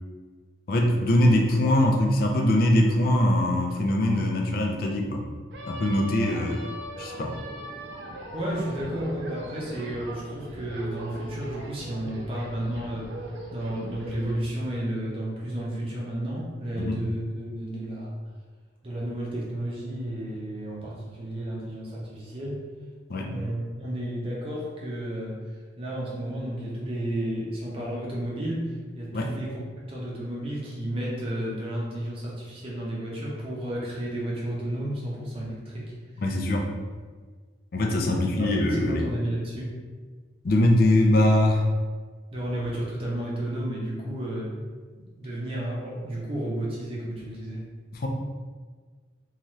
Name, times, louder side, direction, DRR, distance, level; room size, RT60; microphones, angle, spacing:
voice 1, 0.7-5.3 5.7-6.7 7.0-7.3 16.8-17.0 23.1-23.3 29.1-29.3 36.2-36.7 37.7-39.0 40.4-41.7 47.9-48.1, left 1 dB, 50° left, 1 dB, 0.4 m, -22 dB
sound 1, 5.5-14.3, right 1 dB, 70° right, 0.5 m, -40 dB
voice 2, 8.3-13.1 13.5-18.2 18.8-22.6 23.2-25.4 25.8-29.6 29.9-36.2 38.1-39.7 42.3-44.5 44.9-47.6, right 1 dB, 30° right, -5 dB, 0.7 m, -32 dB
2.7 x 2.3 x 3.1 m, 1.5 s
head